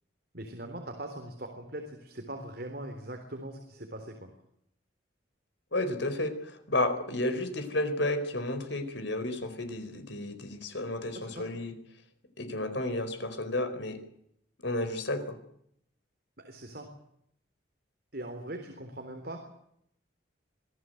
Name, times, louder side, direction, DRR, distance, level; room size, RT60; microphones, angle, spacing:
voice 1, 0.3-4.3 11.1-11.4 16.4-16.9 18.1-19.5, right 1 dB, 55° right, 4 dB, 3.7 m, -41 dB
voice 2, 5.7-11.7 12.4-14.0 14.6-15.4, left 2 dB, 75° left, 9 dB, 4.6 m, -32 dB
26.0 x 17.5 x 7.9 m, 0.73 s
head